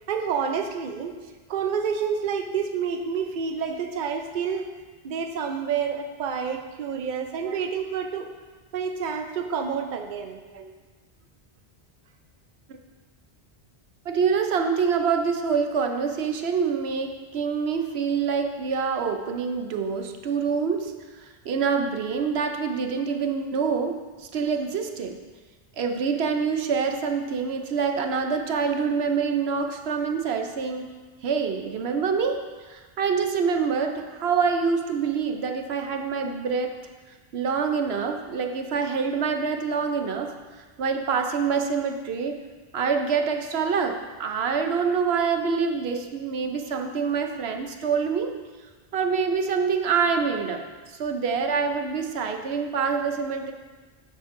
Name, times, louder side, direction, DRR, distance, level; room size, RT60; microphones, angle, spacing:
voice 1, 0.1-1.1 1.5-4.7 5.0-8.3 8.7-10.4, right 6 dB, 55° right, 5 dB, 0.8 m, -28 dB
voice 2, 14.1-20.9 21.2-25.2 25.8-30.9 31.2-36.8 37.3-42.4 42.7-48.3 48.9-50.6 50.9-53.5, right 5 dB, 85° right, 5 dB, 1.0 m, -26 dB
11.5 x 7.8 x 2.6 m, 1.3 s
omnidirectional pair, 1.0 m